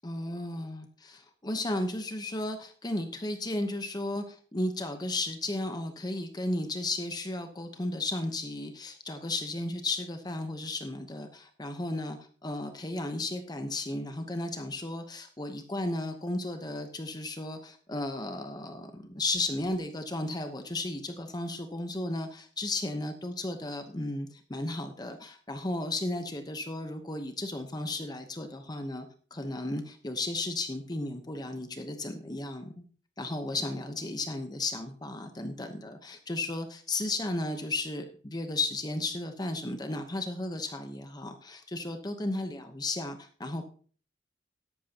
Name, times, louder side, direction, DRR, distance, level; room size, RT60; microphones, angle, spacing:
voice 1, 0.0-32.8 33.2-43.7, left 2 dB, 20° left, 6 dB, 1.0 m, -34 dB
13.0 x 11.5 x 2.9 m, 0.42 s
head